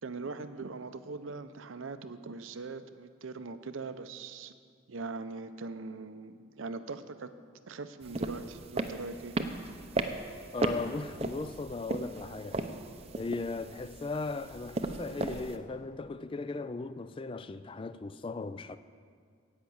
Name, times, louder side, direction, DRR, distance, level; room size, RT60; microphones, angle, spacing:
voice 1, 0.0-4.5 4.9-7.3 7.7-9.4, right 3 dB, 80° right, 0.6 m, -41 dB
sound 1, 8.0-15.6, right 2 dB, 30° right, 0.6 m, -36 dB
voice 2, 10.5-12.7 13.2-18.8, left 3 dB, 25° left, 0.3 m, -37 dB
17.0 x 5.9 x 7.9 m
head